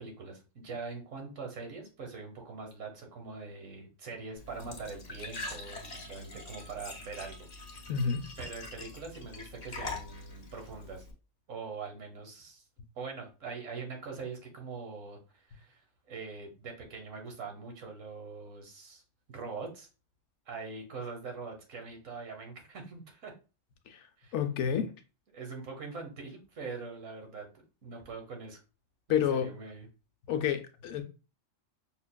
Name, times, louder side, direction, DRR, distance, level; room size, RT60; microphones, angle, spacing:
voice 1, 0.0-7.4 8.4-11.0 11.5-12.6 12.9-19.0 19.3-19.9 20.5-23.3 24.2-24.3 25.3-27.5 27.8-28.6 29.1-29.9, right 4 dB, 90° right, 1.4 m, -43 dB
Glass / Trickle dribble / Fill (with liquid), 4.4-11.1, left 3 dB, 40° left, 0.7 m, -44 dB
voice 2, 7.9-8.2 23.9-24.0 24.3-24.9 29.1-29.5 30.3-31.0, left 8 dB, 75° left, 0.9 m, -29 dB
5.6 x 2.3 x 2.2 m
omnidirectional pair, 1.3 m